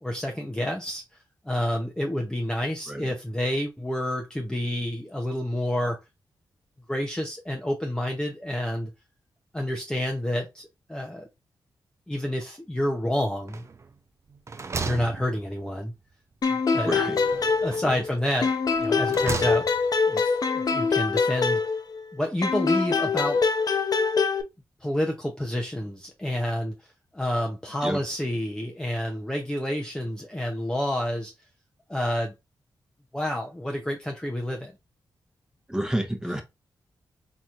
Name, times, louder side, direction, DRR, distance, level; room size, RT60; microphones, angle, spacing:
voice 1, 0.0-1.0 1.4-6.0 6.9-8.9 9.5-11.3 12.1-13.6 14.8-15.9 16.5-16.9 17.6-18.5 18.8-19.7 20.1-21.6 22.1-23.4 24.8-26.7 27.1-31.3 31.9-32.3 33.1-34.7, left 1 dB, 10° left, 0.7 m, -29 dB
sound 1, 13.5-14.0 14.3-15.9 17.2-18.0 18.7-20.0, right 4 dB, 35° right, 0.4 m, -35 dB
sound 2, 16.4-18.1 18.4-22.0 22.4-24.4, left 4 dB, 55° left, 0.6 m, -24 dB
voice 2, 16.8-17.3 17.8-18.0 27.8-28.0 35.7-36.4, right 1 dB, 10° right, 1.0 m, -29 dB
4.3 x 3.0 x 2.5 m
cardioid pair, 75°, 8 cm